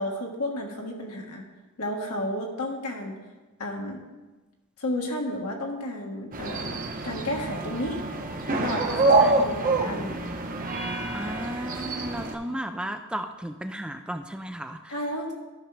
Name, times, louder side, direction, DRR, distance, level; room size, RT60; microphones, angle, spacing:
voice 1, 0.0-1.4 1.8-3.2 3.6-4.0 4.8-8.0 8.5-10.3 14.9-15.3, left 1 dB, 80° left, 0 dB, 1.5 m, -32 dB
sound 1, 6.3-12.4, right 3 dB, 40° right, 0.8 m, -26 dB
voice 2, 11.1-14.8, right 1 dB, 5° right, 7 dB, 0.3 m, -34 dB
13.0 x 6.0 x 3.3 m, 1.2 s
head